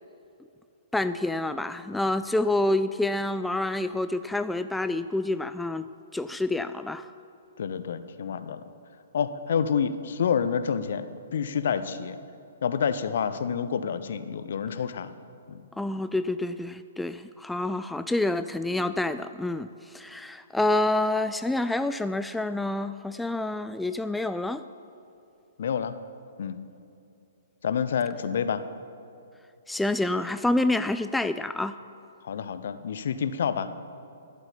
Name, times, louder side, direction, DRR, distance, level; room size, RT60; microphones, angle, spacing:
voice 1, 0.9-5.9 6.1-7.1 15.8-24.6 29.7-31.8, left 2 dB, 5° left, 11 dB, 0.3 m, -28 dB
voice 2, 7.6-8.6 9.1-11.1 11.3-12.2 12.6-15.1 15.5-15.6 25.6-25.9 26.4-26.6 27.6-28.6 32.2-33.7, left 7 dB, 60° left, 12 dB, 0.8 m, -28 dB
12.0 x 8.0 x 8.7 m, 2.7 s
figure-of-eight pair, 125°, 0 cm